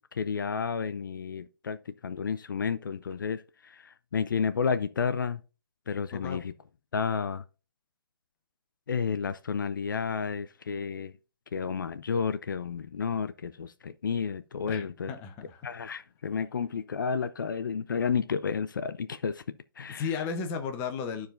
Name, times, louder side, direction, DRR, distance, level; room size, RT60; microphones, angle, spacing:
voice 1, 0.1-5.4 5.9-6.5 6.9-7.4 8.9-11.1 11.5-15.1 15.6-19.4 19.8-20.1, left 6 dB, 60° left, 0.5 m, -31 dB
voice 2, 6.1-6.4 14.7-15.7 20.0-21.3, left 6 dB, 15° left, 0.8 m, -34 dB
12.5 x 4.7 x 2.5 m
figure-of-eight pair, 150°, 12 cm